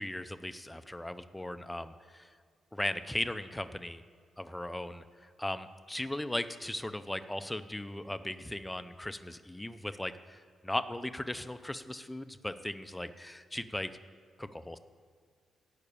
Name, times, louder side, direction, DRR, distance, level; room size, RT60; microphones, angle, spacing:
voice 1, 0.0-2.3 2.7-4.0 4.4-13.9 14.4-14.8, left 1 dB, 10° left, 11 dB, 0.5 m, -38 dB
17.5 x 6.0 x 8.6 m, 2.1 s
cardioid pair, 115°, 0 cm